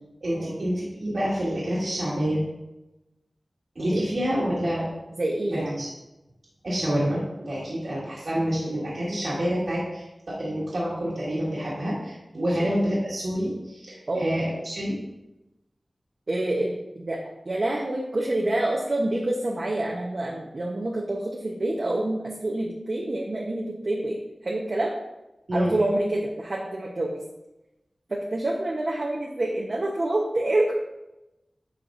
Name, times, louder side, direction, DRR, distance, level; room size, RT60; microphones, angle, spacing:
voice 1, 0.2-2.4 3.8-4.9 5.5-5.9 6.6-15.0 25.5-25.7, equal, 75° right, -9 dB, 1.9 m, -27 dB
voice 2, 5.2-5.9 12.3-12.7 14.1-14.3 16.3-17.2 17.4-24.9 25.5-27.2 28.1-30.7, right 1 dB, 60° right, -3 dB, 0.9 m, -27 dB
9.4 x 4.7 x 2.6 m, 0.96 s
wide cardioid pair, 50°, 0 cm